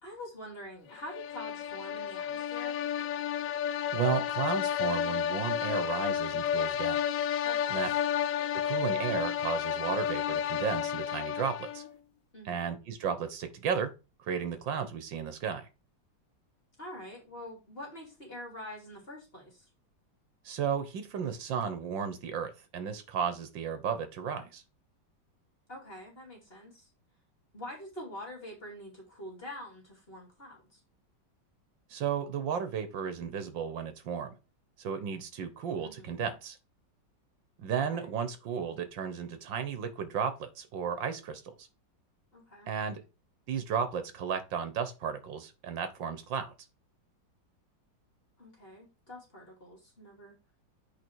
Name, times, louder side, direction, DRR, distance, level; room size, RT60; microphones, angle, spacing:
voice 1, 0.0-2.8 7.4-7.9 12.3-12.7 16.8-19.7 25.7-26.9 27.5-30.8 35.8-36.2 37.8-38.1 42.3-42.7 48.4-50.4, left 1 dB, 30° left, -1 dB, 3.0 m, -45 dB
sound 1, 1.0-12.0, left 9 dB, 90° left, 0.7 m, -31 dB
voice 2, 3.9-7.0 7.7-7.9 8.6-11.8 12.5-13.9 14.3-15.7 20.5-24.6 31.9-34.3 34.8-36.6 37.6-41.5 42.7-43.0 43.5-46.5, right 7 dB, 80° right, 10 dB, 1.9 m, -34 dB
8.0 x 4.9 x 4.6 m, 0.31 s
omnidirectional pair, 2.0 m